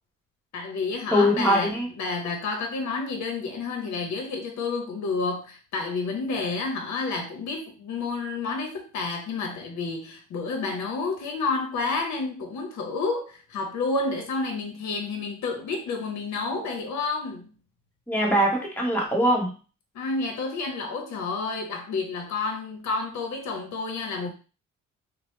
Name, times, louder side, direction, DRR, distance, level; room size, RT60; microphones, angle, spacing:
voice 1, 0.5-17.5 19.9-24.3, left 3 dB, 70° left, 4 dB, 0.7 m, -30 dB
voice 2, 1.1-1.9 18.1-19.5, equal, 5° left, -2 dB, 1.0 m, -22 dB
2.8 x 2.0 x 3.1 m, 0.35 s
cardioid pair, 90°, 30 cm